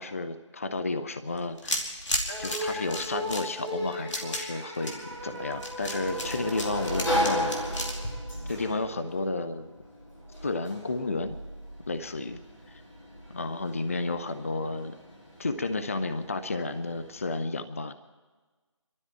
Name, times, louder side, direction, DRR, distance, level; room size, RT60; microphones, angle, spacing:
voice 1, 0.0-1.9 2.4-7.5 8.5-9.8 10.4-11.4 11.9-12.4 13.3-15.0 15.4-17.9, left 3 dB, 30° left, 10 dB, 0.5 m, -32 dB
sound 1, 1.3-9.1, left 1 dB, 70° left, 2.9 m, -34 dB
sound 2, 2.3-8.8, equal, 5° left, 0.9 m, -38 dB
Sliding door, 4.8-17.4, equal, 85° left, 6.2 m, -36 dB
24.5 x 12.5 x 4.5 m, 1.3 s
figure-of-eight pair, 165°, 16 cm